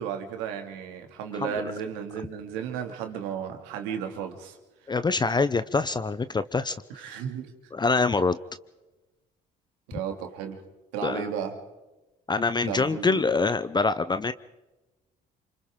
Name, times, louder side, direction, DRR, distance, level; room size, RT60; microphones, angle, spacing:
voice 1, 0.0-4.6 6.9-7.5 9.9-10.6 10.9-11.5 12.7-13.2, right 8 dB, 90° right, 5 dB, 2.4 m, -34 dB
voice 2, 4.9-6.7 7.1-7.2 7.7-8.4 11.0-11.3 12.3-14.3, left 4 dB, 25° left, 13 dB, 0.7 m, -25 dB
27.5 x 25.0 x 3.8 m, 1.1 s
supercardioid pair, 75°, 19 cm